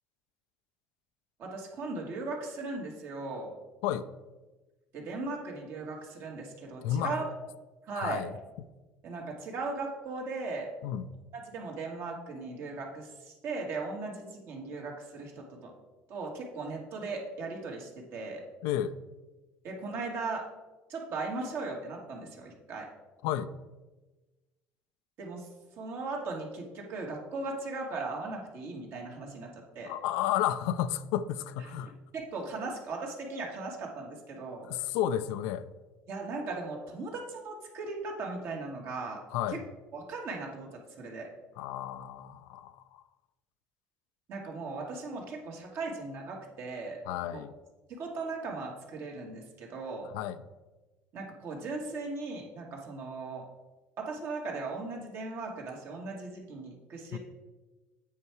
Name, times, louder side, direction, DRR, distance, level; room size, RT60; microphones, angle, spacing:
voice 1, 1.4-3.6 4.9-7.3 7.8-8.3 9.0-10.7 11.5-15.7 16.1-18.4 19.6-20.5 20.9-22.9 25.2-25.5 25.8-29.9 32.1-34.7 36.1-39.2 39.5-39.6 39.9-41.3 44.3-47.0 47.3-47.4 47.9-50.1 51.1-53.5 54.0-57.2, right 3 dB, 55° right, 0 dB, 1.9 m, -38 dB
voice 2, 6.8-7.2 8.0-8.3 10.8-11.0 18.6-19.0 23.2-23.5 29.8-31.9 34.7-35.6 39.3-39.6 41.6-43.0 47.1-47.5 50.1-50.4 57.1-57.2, left 11 dB, 80° left, 13 dB, 0.4 m, -32 dB
8.6 x 4.6 x 4.7 m, 1.2 s
cardioid pair, 115°, 5 cm